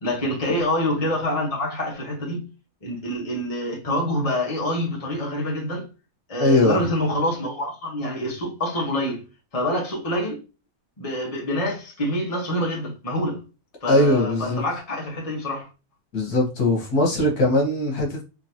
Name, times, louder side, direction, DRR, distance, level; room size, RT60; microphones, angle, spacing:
voice 1, 0.0-2.5 2.8-5.9 6.3-9.2 9.5-10.4 11.0-13.4 13.8-15.7, left 1 dB, 25° left, 1.3 m, -26 dB
voice 2, 6.4-6.8 13.9-14.6 16.1-18.2, left 1 dB, 80° left, 1.8 m, -20 dB
3.8 x 3.1 x 2.9 m
omnidirectional pair, 1.6 m